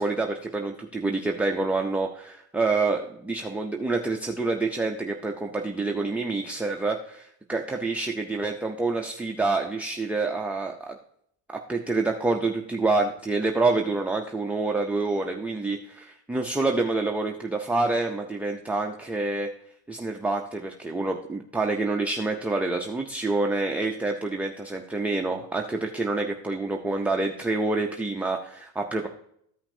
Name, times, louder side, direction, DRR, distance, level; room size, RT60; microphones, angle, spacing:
voice 1, 0.0-10.9 11.5-19.5 19.9-29.1, right 3 dB, 5° right, 1 dB, 0.3 m, -27 dB
13.5 x 5.7 x 2.6 m, 0.70 s
cardioid pair, 115°, 49 cm